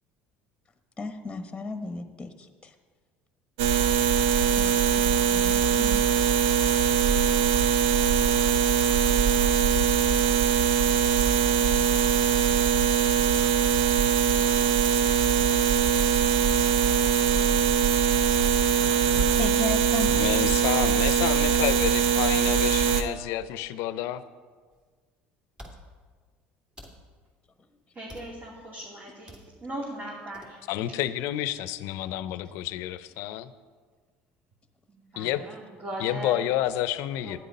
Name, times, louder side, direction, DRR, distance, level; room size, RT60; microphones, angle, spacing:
voice 1, 1.0-2.3 4.6-4.7 5.0-6.0 19.4-20.5, left 3 dB, 20° left, 8 dB, 1.2 m, -35 dB
sound 1, 3.6-23.0, right 7 dB, 80° right, 0.9 m, -22 dB
voice 2, 20.1-24.2 30.7-33.5 35.2-35.4 36.0-37.4, left 13 dB, 70° left, 15 dB, 0.6 m, -29 dB
sound 2, 24.7-24.8 25.6-25.8 26.7-27.0 28.1-28.4 29.3-29.5 30.3-30.5, equal, 15° right, 2.6 m, -46 dB
voice 3, 27.9-30.6 34.9-36.4 37.2-37.4, right 1 dB, 40° right, -4 dB, 3.0 m, -39 dB
12.0 x 9.9 x 5.4 m, 1.5 s
supercardioid pair, 85°, 5 cm